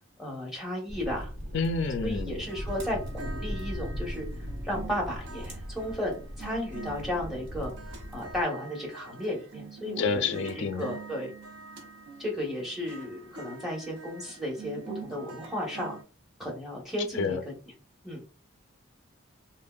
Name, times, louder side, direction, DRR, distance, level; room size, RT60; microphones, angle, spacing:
voice 1, 0.2-1.3 2.0-4.3 4.6-7.7 8.1-11.3 12.2-16.0 16.4-17.4 18.0-18.2, left 1 dB, ahead, 0.8 m, -34 dB
sound 1, 0.9-8.4, equal, 90° right, 1.1 m, -38 dB
voice 2, 1.5-2.4 10.0-10.9 17.1-17.4, left 4 dB, 60° left, 0.3 m, -29 dB
sound 2, 2.1-16.0, right 4 dB, 65° right, 0.6 m, -45 dB
3.3 x 2.1 x 2.2 m
head